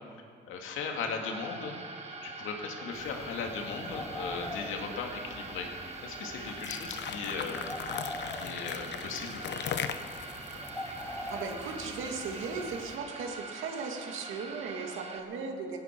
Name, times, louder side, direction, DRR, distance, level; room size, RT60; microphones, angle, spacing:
voice 1, 0.5-1.8 2.2-7.8 8.3-9.9, left 5 dB, 90° left, 2 dB, 2.1 m, -37 dB
sound 1, 1.0-15.2, right 3 dB, 35° right, 1.7 m, -44 dB
sound 2, 2.9-13.0, left 1 dB, 15° left, 2.0 m, -44 dB
sound 3, 6.5-11.7, left 8 dB, 60° left, 0.8 m, -38 dB
voice 2, 11.0-15.8, right 4 dB, 85° right, 3 dB, 2.2 m, -37 dB
18.5 x 17.0 x 4.6 m, 2.3 s
cardioid pair, 90°, 20 cm